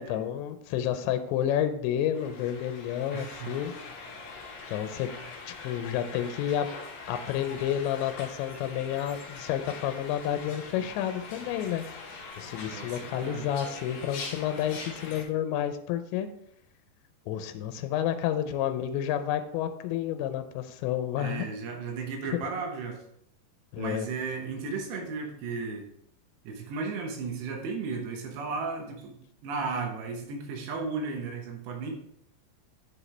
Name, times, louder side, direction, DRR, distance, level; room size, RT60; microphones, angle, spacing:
voice 1, 0.0-3.7 4.7-5.1 5.5-6.7 7.1-11.8 12.4-16.3 17.3-21.5 22.3-22.4 23.7-24.1, left 10 dB, 85° left, 9 dB, 2.9 m, -30 dB
sound 1, 2.1-15.2, left 4 dB, 60° left, 3.0 m, -43 dB
voice 2, 3.1-3.5 12.7-13.5 21.2-23.0 23.8-25.9 26.4-29.2 29.4-31.9, right 4 dB, 80° right, 2 dB, 3.2 m, -35 dB
10.5 x 5.0 x 3.2 m, 0.71 s
omnidirectional pair, 5.1 m